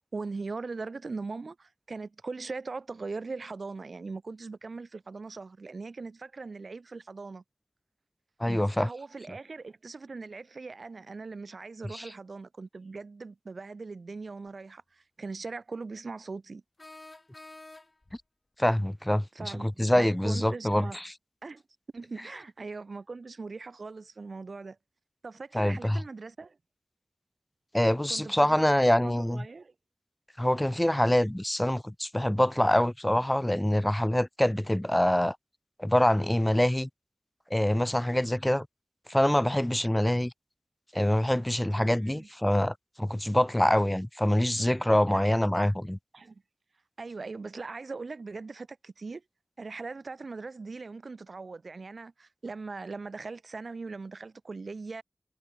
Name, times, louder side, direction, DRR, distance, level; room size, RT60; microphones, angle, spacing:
voice 1, 0.1-7.4 8.5-16.6 19.3-21.0 21.4-21.6 21.9-24.8 25.2-26.6 28.1-29.7 41.8-42.3 45.1-45.3 46.1-46.4 47.0-49.2 49.6-55.0, right 4 dB, 90° right, 0.5 m, -40 dB
voice 2, 8.4-8.9 11.9-12.1 18.6-21.0 25.5-26.0 27.7-29.4 30.4-35.4 35.8-36.9 37.5-38.7 39.1-40.3 40.9-46.0, left 1 dB, 15° left, 0.5 m, -25 dB
sound 1, 14.5-14.6 16.8-18.2, left 2 dB, 50° left, 2.6 m, -49 dB
wide cardioid pair, 45°, 0 cm